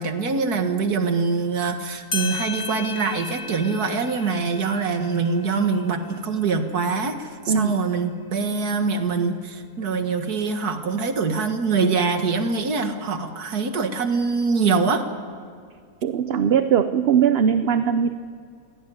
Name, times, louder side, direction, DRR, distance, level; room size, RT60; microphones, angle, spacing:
voice 1, 0.0-15.0, right 4 dB, 80° right, 6 dB, 2.2 m, -24 dB
sound 1, 1.8-1.9 2.1-7.2, left 4 dB, 55° left, 3.2 m, -35 dB
voice 2, 7.5-7.8 16.0-18.2, right 7 dB, 50° right, 10 dB, 0.9 m, -20 dB
25.0 x 16.5 x 9.5 m, 2.2 s
omnidirectional pair, 1.6 m